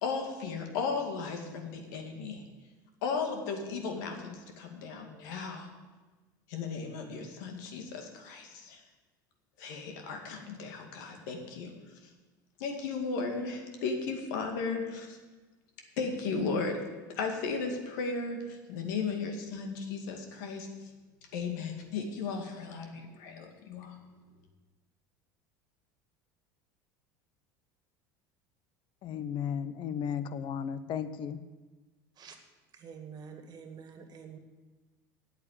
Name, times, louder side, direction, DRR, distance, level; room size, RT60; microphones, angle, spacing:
voice 1, 0.0-2.4 3.0-5.7 6.5-8.8 9.6-11.7 12.6-15.2 16.0-16.8 17.2-20.7 21.3-24.0, left 4 dB, 75° left, 2.1 m, -35 dB
voice 2, 29.0-31.4, left 8 dB, 55° left, 0.8 m, -34 dB
voice 3, 32.7-34.4, right 6 dB, 40° right, 1.9 m, -47 dB
8.7 x 8.4 x 8.6 m
hypercardioid pair, 90°, 10 cm